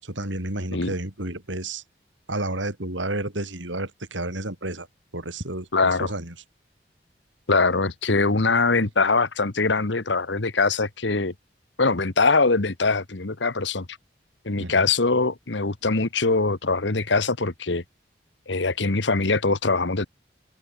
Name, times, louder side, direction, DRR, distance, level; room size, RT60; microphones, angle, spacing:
voice 1, 0.0-1.8 2.3-4.9 5.1-6.3 14.6-14.9, right 1 dB, 90° right, 6.0 m, -31 dB
voice 2, 5.7-6.1 7.5-11.3 11.8-13.9 14.4-17.8 18.5-20.1, left 3 dB, 75° left, 1.4 m, -22 dB
open air
head